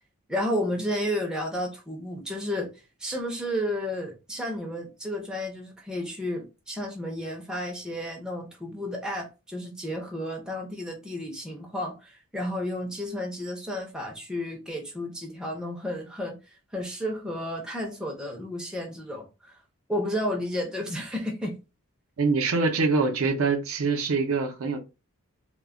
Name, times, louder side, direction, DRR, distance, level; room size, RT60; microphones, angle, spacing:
voice 1, 0.3-2.7 3.0-16.4 16.7-19.5 19.9-21.6, equal, 5° right, 0.5 m, -32 dB
voice 2, 22.2-24.8, right 4 dB, 65° right, 0.5 m, -24 dB
2.2 x 2.1 x 3.5 m
head